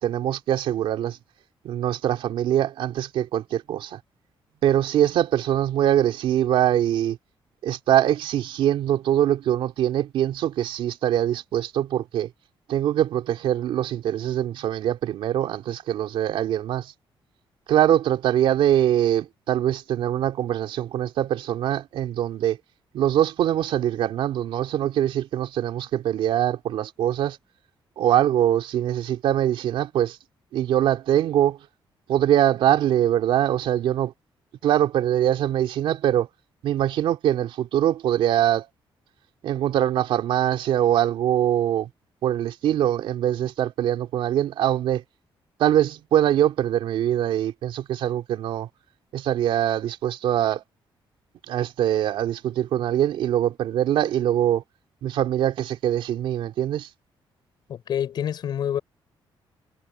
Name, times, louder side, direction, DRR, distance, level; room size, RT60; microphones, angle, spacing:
voice 1, 0.0-1.2 1.6-4.0 4.6-7.2 7.6-12.3 12.7-16.9 17.7-22.6 22.9-27.4 28.0-30.2 30.5-31.6 32.1-34.1 34.6-36.3 36.6-38.7 39.4-41.9 42.2-45.0 45.6-48.7 49.1-50.6 51.5-54.6 55.0-56.9, right 11 dB, 80° right, 3.3 m, -23 dB
voice 2, 57.7-58.8, left 9 dB, 55° left, 6.5 m, -27 dB
cardioid pair, 180°, 9 cm